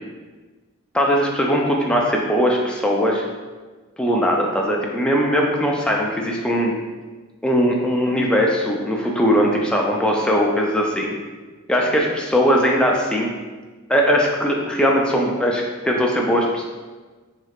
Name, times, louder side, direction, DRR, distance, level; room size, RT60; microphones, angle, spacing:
voice 1, 0.9-3.3 4.0-6.7 7.4-11.1 11.7-13.3 13.9-16.6, equal, 5° left, -1 dB, 0.3 m, -20 dB
3.2 x 3.1 x 2.3 m, 1.3 s
head